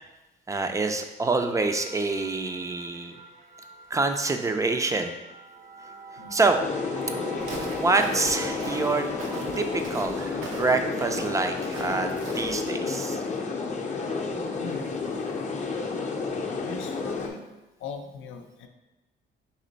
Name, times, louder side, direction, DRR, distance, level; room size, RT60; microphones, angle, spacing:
voice 1, 0.5-3.2 3.9-5.1 6.3-6.6 7.7-9.1 9.6-13.2, right 3 dB, 15° right, 6 dB, 0.4 m, -26 dB
sound 1, 1.6-9.8, right 3 dB, 60° right, 0.7 m, -44 dB
sound 2, 6.6-17.3, left 4 dB, 35° left, 0.6 m, -31 dB
Walk footsteps, 7.4-12.7, right 3 dB, 90° right, 0.8 m, -41 dB
voice 2, 14.6-15.4 16.6-17.4 17.8-18.7, left 5 dB, 75° left, 5 dB, 0.5 m, -40 dB
4.3 x 3.0 x 3.9 m, 1.0 s
cardioid pair, 90°, 20 cm